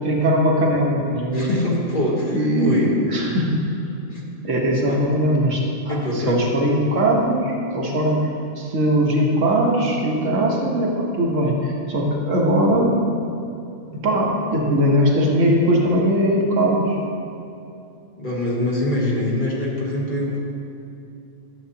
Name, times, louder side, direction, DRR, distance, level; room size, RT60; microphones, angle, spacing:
voice 1, 0.0-1.5 2.3-3.6 4.4-8.3 8.6-13.0 14.0-17.0, equal, 70° right, -2 dB, 1.4 m, -20 dB
voice 2, 1.3-2.9 4.1-4.2 4.9-5.1 5.9-6.4 18.2-20.4, left 1 dB, 40° left, -4 dB, 1.2 m, -24 dB
10.5 x 7.0 x 2.8 m, 2.7 s
omnidirectional pair, 1.4 m